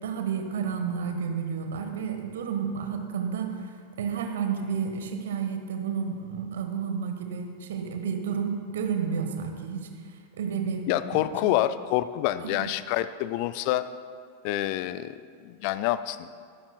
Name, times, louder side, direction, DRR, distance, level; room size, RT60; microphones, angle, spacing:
voice 1, 0.0-9.9 10.4-10.8 11.1-11.5 12.4-12.7, right 6 dB, 60° right, 5 dB, 1.4 m, -31 dB
voice 2, 10.9-13.9 14.4-16.4, left 14 dB, 45° left, 14 dB, 0.4 m, -27 dB
22.5 x 12.5 x 2.3 m, 2.1 s
figure-of-eight pair, 90°, 0 cm